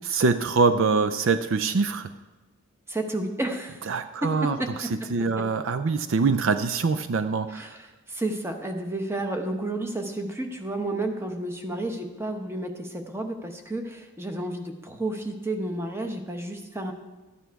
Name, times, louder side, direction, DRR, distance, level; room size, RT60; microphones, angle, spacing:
voice 1, 0.0-2.1 3.9-7.7, right 4 dB, 60° right, 10 dB, 0.4 m, -24 dB
voice 2, 2.9-3.9 4.2-4.7 5.4-5.5 7.5-16.9, right 1 dB, 10° right, 4 dB, 0.9 m, -31 dB
12.5 x 9.1 x 4.7 m, 1.2 s
head